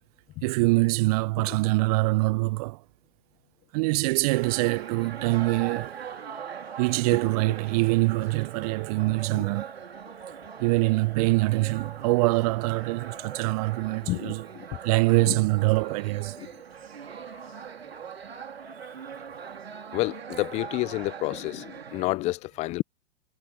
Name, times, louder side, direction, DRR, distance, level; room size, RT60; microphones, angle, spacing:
voice 1, 0.4-2.8 3.7-6.0 6.8-9.7 10.6-14.5 14.8-16.4, right 23 dB, 40° right, 0.5 m, -24 dB
sound 1, 4.3-22.1, right 7 dB, 85° right, 3.0 m, -41 dB
voice 2, 14.1-14.6 15.3-15.4 16.4-16.5 19.9-22.8, left 19 dB, 25° left, 0.4 m, -29 dB
hypercardioid pair, 110°, 30 cm